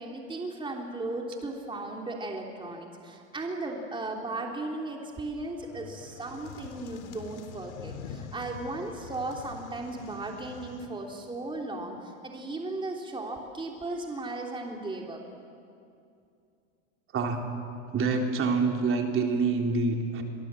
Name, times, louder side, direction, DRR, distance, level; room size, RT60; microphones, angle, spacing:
voice 1, 0.0-15.2, right 2 dB, 15° right, 1 dB, 3.2 m, -36 dB
sound 1, 5.6-10.9, left 6 dB, 80° left, 3.1 m, -45 dB
voice 2, 17.9-20.2, right 4 dB, 35° right, 2 dB, 3.7 m, -26 dB
29.0 x 23.5 x 7.7 m, 2.5 s
hypercardioid pair, 105°, 34 cm